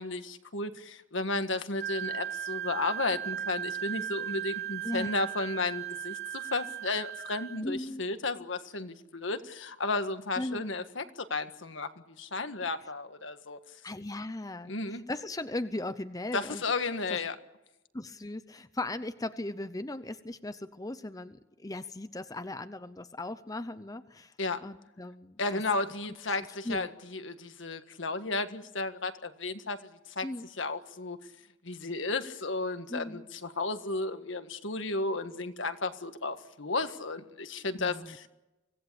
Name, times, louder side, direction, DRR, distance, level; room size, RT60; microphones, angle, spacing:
voice 1, 0.0-11.9 12.2-13.6 14.7-15.0 16.3-17.3 24.4-24.6 25.4-29.9 30.1-30.2 30.6-31.2 31.6-38.3, left 3 dB, 70° left, 9 dB, 1.7 m, -33 dB
Wind instrument woodwind instrument, 1.8-7.6, right 10 dB, 55° right, 1.1 m, -37 dB
voice 2, 7.6-8.0 10.4-10.6 13.8-16.6 17.9-24.3 24.6-25.6 26.4-26.9 30.2-30.5 32.9-33.2 37.8-38.3, left 1 dB, 20° left, 11 dB, 0.7 m, -38 dB
25.0 x 17.5 x 8.6 m, 0.99 s
head